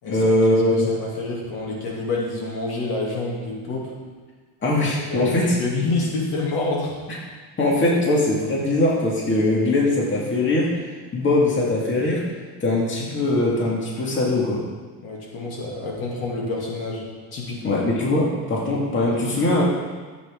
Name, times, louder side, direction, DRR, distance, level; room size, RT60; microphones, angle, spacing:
voice 1, 0.1-0.9 4.6-5.6 7.6-10.8 11.1-12.2 12.6-14.6 17.6-19.6, left 2 dB, 30° left, -3 dB, 2.0 m, -21 dB
voice 2, 0.7-3.9 5.1-6.9 15.0-17.8, left 3 dB, 70° left, -3 dB, 2.8 m, -28 dB
14.0 x 7.9 x 3.7 m, 1.4 s
cardioid pair, 135°, 38 cm